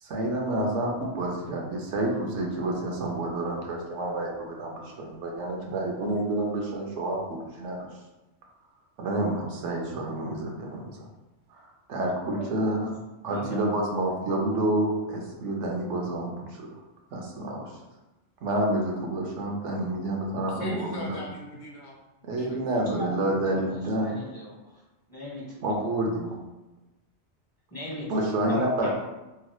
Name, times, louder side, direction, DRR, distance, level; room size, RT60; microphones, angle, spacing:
voice 1, 0.0-7.9 9.0-11.0 11.5-13.0 13.2-16.8 17.1-17.7 18.4-21.2 22.2-24.2 25.6-26.4 28.1-28.9, right 1 dB, 80° right, 0 dB, 1.0 m, -29 dB
voice 2, 13.3-13.6 23.0-24.5 25.1-25.7 27.7-28.9, left 1 dB, 20° left, -6 dB, 0.8 m, -38 dB
voice 3, 20.4-23.3, left 1 dB, 70° left, -1 dB, 0.9 m, -40 dB
3.0 x 3.0 x 2.2 m, 1.1 s
omnidirectional pair, 1.2 m